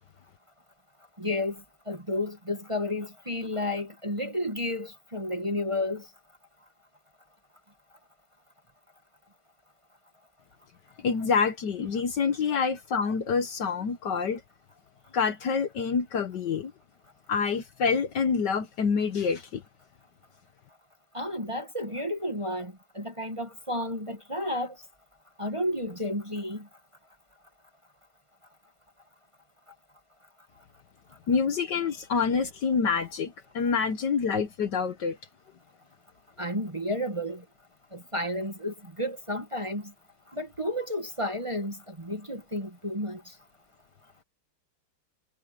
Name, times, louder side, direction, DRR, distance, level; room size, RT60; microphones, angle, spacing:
voice 1, 1.2-1.6 1.9-6.0 21.1-24.8 25.4-26.7 36.4-37.4 37.9-39.9 40.3-43.2, left 1 dB, 15° right, 1.6 m, -32 dB
voice 2, 11.0-14.4 15.1-16.7 17.3-19.6 31.3-35.2, left 5 dB, 60° left, 1.6 m, -27 dB
omnidirectional pair, 2.3 m